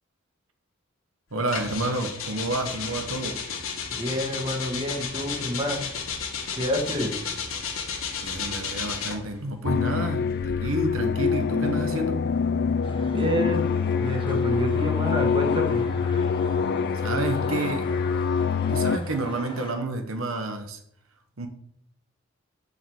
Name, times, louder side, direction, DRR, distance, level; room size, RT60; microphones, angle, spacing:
voice 1, 1.3-3.4 8.2-12.2 16.9-17.9 18.7-20.8 21.4-21.5, right 2 dB, 80° right, 6 dB, 1.1 m, -29 dB
sound 1, 1.5-9.4 10.2-12.7, left 6 dB, 80° left, 1.6 m, -33 dB
voice 2, 3.9-6.0 6.5-7.3 13.1-15.9, left 1 dB, 25° right, 2 dB, 1.7 m, -28 dB
sound 2, 9.6-19.0, left 6 dB, 50° left, 0.4 m, -25 dB
sound 3, 12.8-19.7, left 2 dB, 25° left, 1.5 m, -41 dB
6.7 x 5.2 x 7.1 m, 0.72 s
head